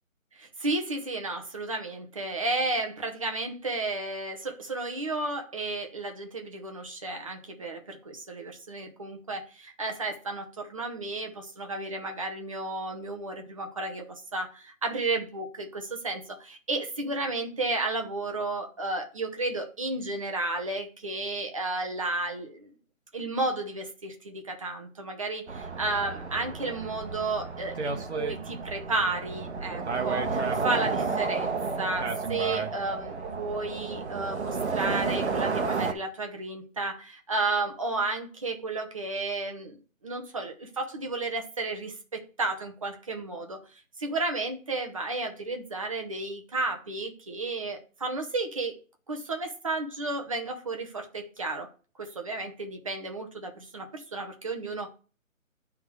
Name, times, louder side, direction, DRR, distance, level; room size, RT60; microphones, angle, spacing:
voice 1, 0.3-22.7 23.1-39.8 40.0-48.8 49.1-51.7 52.0-54.9, right 2 dB, 25° right, 4 dB, 0.8 m, -33 dB
sound 1, 25.5-35.9, right 4 dB, 55° right, 1.0 m, -31 dB
9.6 x 3.6 x 4.6 m, 0.37 s
figure-of-eight pair, 160°, 41 cm